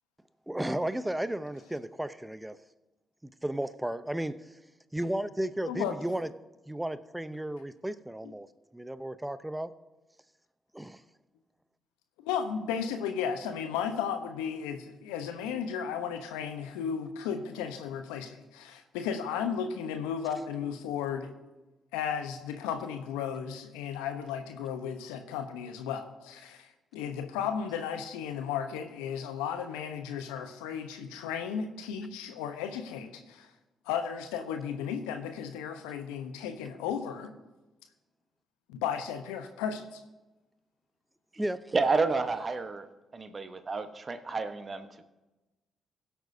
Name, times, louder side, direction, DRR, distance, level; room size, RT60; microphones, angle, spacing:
voice 1, 0.5-2.6 3.2-4.4 4.9-6.3 6.7-8.5 8.7-9.7 10.7-11.0 41.4-41.6, right 1 dB, 10° right, 14 dB, 0.7 m, -34 dB
voice 2, 5.7-6.0 12.2-21.3 21.9-33.5 33.8-37.3 38.7-40.0, left 7 dB, 80° left, 7 dB, 0.9 m, -34 dB
voice 3, 41.7-42.9 43.1-45.0, right 4 dB, 40° right, 9 dB, 1.1 m, -30 dB
21.5 x 8.0 x 2.8 m, 1.1 s
hypercardioid pair, 40°, 0 cm